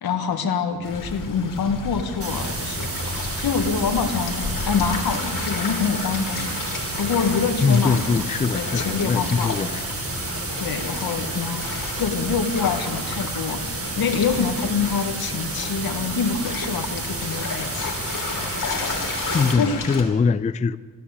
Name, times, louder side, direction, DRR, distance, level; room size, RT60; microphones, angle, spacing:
voice 1, 0.0-2.9 3.4-6.5 7.0-8.0 8.5-9.5 10.6-13.6 14.0-17.9 19.6-19.8, left 6 dB, 85° left, 1.7 m, -25 dB
sound 1, 0.8-20.0, left 3 dB, 60° left, 2.9 m, -32 dB
sound 2, 2.2-19.6, right 3 dB, 40° right, 1.9 m, -31 dB
voice 2, 7.6-9.9 19.3-20.8, left 5 dB, 20° left, 0.4 m, -22 dB
13.5 x 13.0 x 7.9 m
cardioid pair, 105°, 36 cm